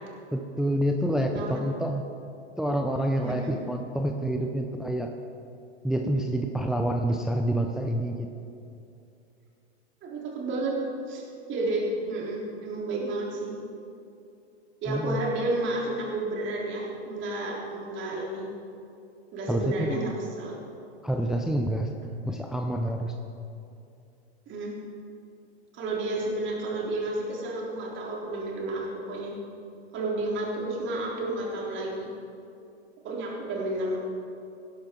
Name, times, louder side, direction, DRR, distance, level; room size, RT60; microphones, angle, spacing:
voice 1, 0.3-2.0 2.6-5.1 5.8-8.3 14.9-15.2 19.5-20.1 21.0-23.1, right 1 dB, ahead, 3 dB, 0.6 m, -28 dB
voice 2, 3.2-3.6 10.0-10.8 11.1-11.2 11.5-13.6 14.8-18.5 19.3-20.6 24.5-24.8 25.7-29.3 29.9-32.1 33.0-34.0, right 2 dB, 35° right, -3 dB, 3.7 m, -31 dB
17.5 x 11.5 x 3.9 m, 2.7 s
hypercardioid pair, 105°, 34 cm